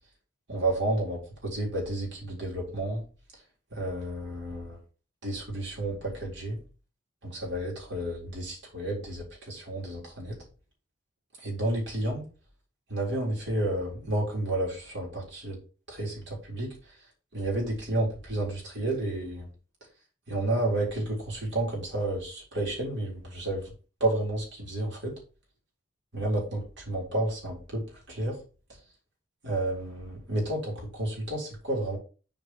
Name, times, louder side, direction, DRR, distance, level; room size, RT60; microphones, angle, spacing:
voice 1, 0.5-3.0 3.7-4.8 5.2-6.6 7.2-10.4 11.4-12.2 12.9-15.6 15.9-16.7 17.3-19.5 20.3-23.7 24.0-25.2 26.1-28.4 29.4-32.0, right 1 dB, 65° right, -2 dB, 3.8 m, -31 dB
7.2 x 4.7 x 4.5 m, 0.35 s
head